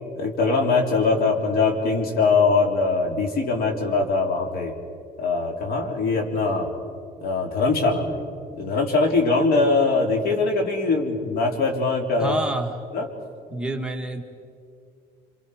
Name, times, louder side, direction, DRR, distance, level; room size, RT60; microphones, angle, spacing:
voice 1, 0.2-4.7 5.2-6.7 7.2-8.2 8.6-12.4 12.9-13.1, left 3 dB, 65° left, 2 dB, 3.5 m, -22 dB
voice 2, 12.2-12.8 13.5-14.2, right 2 dB, 5° right, 1 dB, 1.6 m, -28 dB
28.5 x 26.0 x 5.0 m, 2.4 s
cardioid pair, 110°, 17 cm